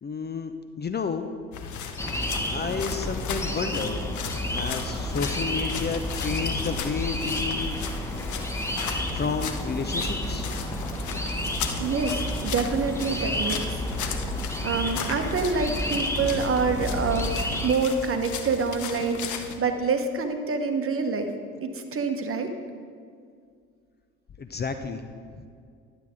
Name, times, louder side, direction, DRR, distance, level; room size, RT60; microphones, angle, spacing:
voice 1, 0.0-1.3 2.5-4.1 4.5-7.8 9.1-10.5 24.4-25.0 25.3-25.5, left 5 dB, 30° left, 8 dB, 0.6 m, -31 dB
sound 1, 1.5-19.6, left 7 dB, 55° left, 0.9 m, -36 dB
sound 2, 2.0-17.7, left 1 dB, 10° left, 1.2 m, -31 dB
voice 2, 11.8-13.8 14.6-21.3 21.6-22.5, right 4 dB, 40° right, 6 dB, 1.1 m, -27 dB
11.5 x 7.9 x 3.7 m, 2.2 s
hypercardioid pair, 55°, 36 cm